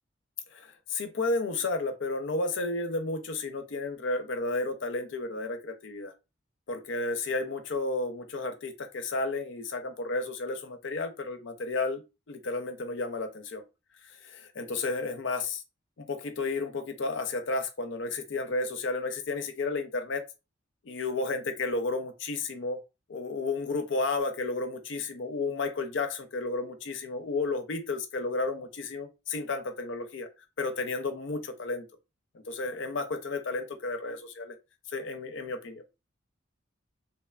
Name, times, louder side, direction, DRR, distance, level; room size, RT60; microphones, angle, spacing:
voice 1, 0.5-6.1 6.7-12.0 12.3-13.6 14.2-15.6 16.0-20.3 20.9-22.8 23.1-30.3 30.6-31.9 32.5-34.5 34.9-35.8, left 3 dB, 60° left, 0.5 m, -32 dB
3.0 x 2.2 x 2.3 m
head